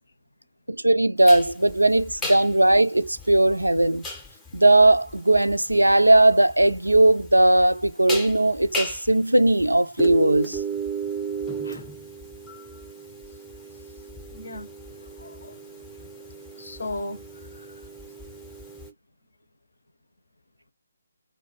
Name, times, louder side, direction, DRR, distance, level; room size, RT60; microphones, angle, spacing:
voice 1, 0.7-4.0 4.5-10.6, right 1 dB, 85° right, 0.3 m, -18 dB
sound 1, 1.2-18.9, right 2 dB, 10° left, 0.5 m, -36 dB
voice 2, 14.3-14.7 15.0-15.6 16.2-16.3 16.6-17.2 17.5-17.8, left 2 dB, 65° left, 0.6 m, -37 dB
2.2 x 2.1 x 2.9 m
figure-of-eight pair, 145°, 0 cm